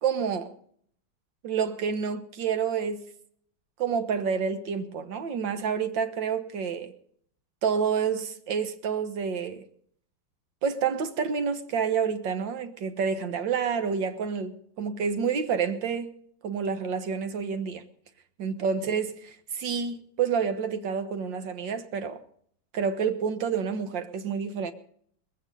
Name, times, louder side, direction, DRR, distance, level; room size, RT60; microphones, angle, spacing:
voice 1, 0.0-0.5 1.4-3.1 3.8-6.9 7.6-9.7 10.6-16.1 16.4-17.8 18.4-22.2 22.7-24.7, right 6 dB, 65° right, 2.0 m, -28 dB
20.5 x 16.0 x 4.0 m
omnidirectional pair, 2.2 m